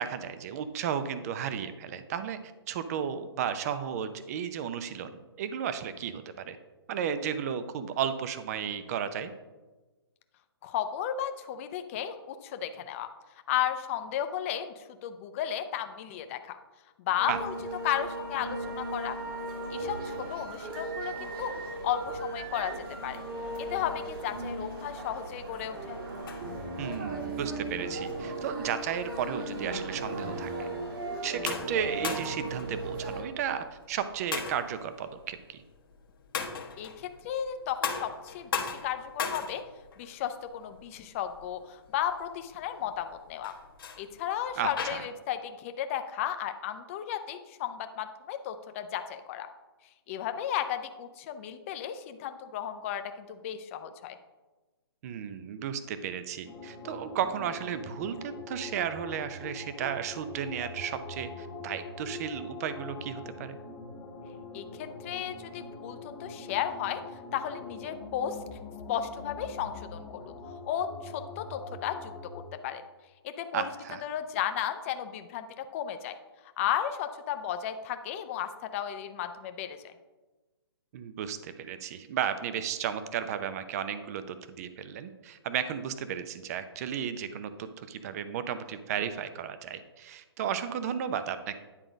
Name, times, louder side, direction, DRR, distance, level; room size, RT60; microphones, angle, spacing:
voice 1, 0.0-2.4 2.7-6.6 6.9-9.3 17.3-17.4 26.8-30.7 31.2-35.6 44.6-45.0 55.0-63.6 73.5-74.0 80.9-91.6, right 8 dB, 35° right, 11 dB, 0.6 m, -34 dB
voice 2, 10.6-13.1 13.5-16.6 17.1-17.5 17.8-19.2 19.7-21.5 21.8-22.7 23.0-23.2 23.6-26.0 36.8-39.6 40.0-43.5 44.0-49.5 50.1-54.2 64.5-67.0 67.3-68.4 68.9-70.3 70.7-72.3 72.6-72.8 73.2-73.7 74.0-76.2 76.6-79.9, left 10 dB, 30° left, 8 dB, 0.6 m, -34 dB
sound 1, 17.2-33.2, right 2 dB, 60° right, 2.3 m, -37 dB
sound 2, 26.0-45.0, left 6 dB, 55° left, 1.1 m, -39 dB
sound 3, 56.5-72.4, left 3 dB, 15° left, 1.1 m, -44 dB
9.9 x 3.9 x 5.0 m, 1.2 s
hypercardioid pair, 145°, 13 cm